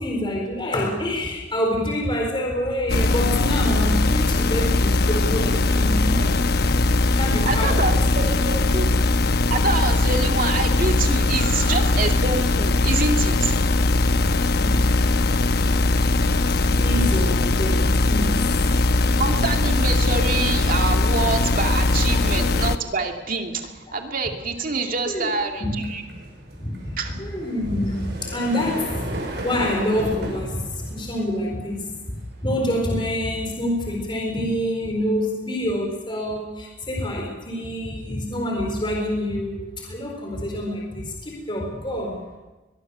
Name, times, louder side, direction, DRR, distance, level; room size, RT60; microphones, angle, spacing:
voice 1, 0.0-6.4 7.1-7.9 11.4-11.9 14.6-14.8 16.5-18.5 22.1-22.2 22.6-22.7 25.1-25.3 25.6-25.8 26.6-26.7 27.2-29.1 29.4-42.2, left 1 dB, 30° left, 1 dB, 4.0 m, -27 dB
sound 1, 2.9-22.8, left 2 dB, 60° left, 1.0 m, -20 dB
voice 2, 7.4-8.9 9.5-13.5 19.2-26.0 27.0-27.2, right 3 dB, 50° right, 3 dB, 2.5 m, -26 dB
sound 2, 22.8-33.9, right 1 dB, 65° right, 6.4 m, -39 dB
23.0 x 21.5 x 6.9 m, 1.1 s
head